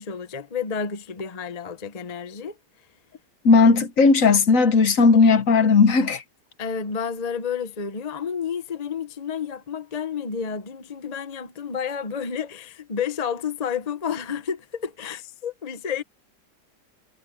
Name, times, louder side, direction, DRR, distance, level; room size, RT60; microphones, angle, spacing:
voice 1, 0.0-2.6 6.6-16.0, left 7 dB, 30° left, 0.8 m, -30 dB
voice 2, 3.4-6.2, left 4 dB, 55° left, 1.4 m, -16 dB
omnidirectional pair, 1.8 m